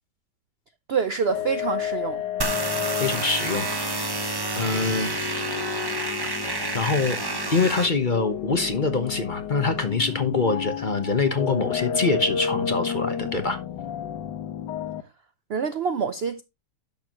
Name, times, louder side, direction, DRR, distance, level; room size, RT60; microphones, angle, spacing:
voice 1, 0.9-2.2 15.5-16.4, right 6 dB, 70° right, 0.5 m, -26 dB
sound 1, 1.3-15.0, left 9 dB, 85° left, 1.4 m, -32 dB
sound 2, 2.4-7.9, right 2 dB, 25° right, 0.5 m, -29 dB
voice 2, 3.0-4.2 4.6-5.3 6.4-7.2 7.5-13.6, left 3 dB, 35° left, 1.0 m, -25 dB
10.5 x 6.9 x 3.0 m
omnidirectional pair, 1.9 m